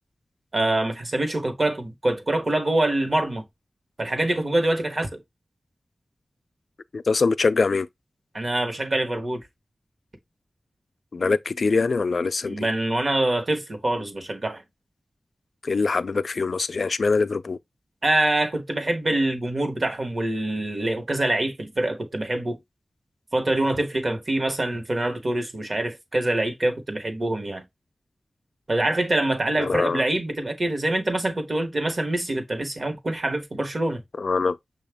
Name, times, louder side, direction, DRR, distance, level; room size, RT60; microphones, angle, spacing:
voice 1, 0.5-3.4 4.0-5.2 8.3-9.4 12.5-14.6 18.0-22.6 23.3-27.6 28.7-34.0, right 1 dB, 45° right, 1.0 m, -25 dB
voice 2, 6.9-7.9 11.1-12.7 15.6-17.6 29.6-30.0 34.2-34.6, left 4 dB, 70° left, 0.3 m, -23 dB
6.6 x 2.4 x 3.4 m
wide cardioid pair, 100°, 0 cm